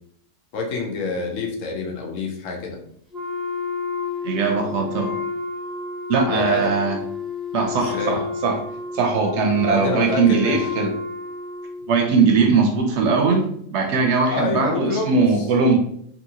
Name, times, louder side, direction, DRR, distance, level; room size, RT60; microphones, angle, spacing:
voice 1, 0.5-2.8 6.3-6.7 7.7-8.2 9.5-10.7 14.3-15.5, left 3 dB, 80° left, 1 dB, 1.0 m, -27 dB
Wind instrument woodwind instrument, 3.1-11.9, left 5 dB, ahead, 0.6 m, -30 dB
voice 2, 4.2-5.2 6.1-7.0 7.5-8.6 8.9-10.9 11.9-15.8, right 4 dB, 70° right, 4 dB, 0.8 m, -20 dB
2.8 x 2.8 x 2.7 m, 0.67 s
omnidirectional pair, 1.3 m